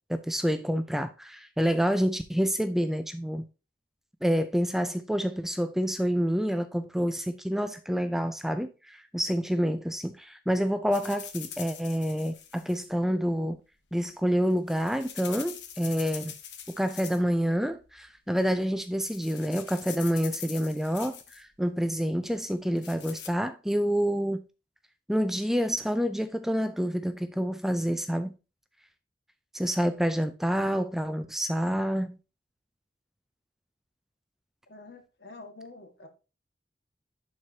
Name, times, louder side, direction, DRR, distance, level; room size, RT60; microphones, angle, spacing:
voice 1, 0.1-3.5 4.2-13.6 13.9-16.3 16.8-24.4 25.1-28.3 29.5-32.2, equal, ahead, 0.4 m, -28 dB
sound 1, 10.9-12.8 14.3-17.4 17.6-18.1 18.6-18.8 19.0-21.4 22.4-23.3, left 9 dB, 85° left, 1.1 m, -43 dB
voice 2, 34.7-36.1, left 3 dB, 65° left, 1.7 m, -47 dB
11.0 x 4.7 x 2.8 m
head